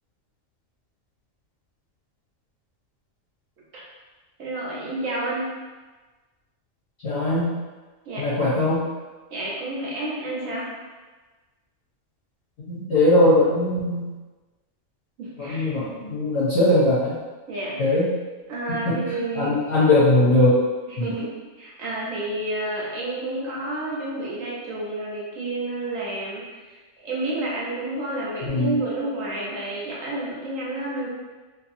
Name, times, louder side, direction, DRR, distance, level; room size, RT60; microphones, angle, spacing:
voice 1, 4.4-5.5 8.1-8.3 9.3-10.7 15.2-15.7 17.5-17.8 18.5-19.5 20.9-21.3 21.6-31.1, right 2 dB, 75° right, -5 dB, 1.2 m, -30 dB
voice 2, 7.0-7.5 8.2-8.9 12.7-14.1 15.4-17.2 17.8-18.1 18.8-19.0 19.3-20.6 21.0-21.1 28.4-28.8, left 1 dB, 60° left, -9 dB, 0.9 m, -20 dB
2.8 x 2.5 x 2.5 m, 1.3 s
omnidirectional pair, 1.4 m